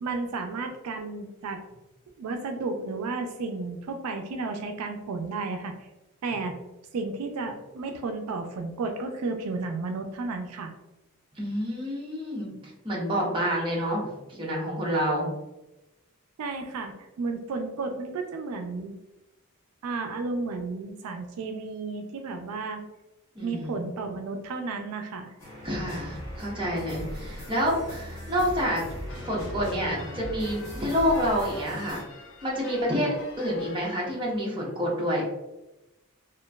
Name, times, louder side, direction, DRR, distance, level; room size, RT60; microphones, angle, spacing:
voice 1, 0.0-1.6 2.2-5.9 6.2-6.5 6.9-10.7 16.4-18.9 19.8-22.8 23.4-25.3, right 3 dB, 85° right, 5 dB, 0.4 m, -33 dB
voice 2, 11.4-15.3 23.3-23.8 25.6-28.9 29.3-32.0 32.4-35.2, equal, 20° right, -4 dB, 0.6 m, -28 dB
sound 1, 25.4-32.0, equal, 15° left, 0.9 m, -39 dB
sound 2, 29.1-34.4, left 3 dB, 60° left, 0.4 m, -45 dB
2.9 x 2.4 x 2.2 m, 0.99 s
head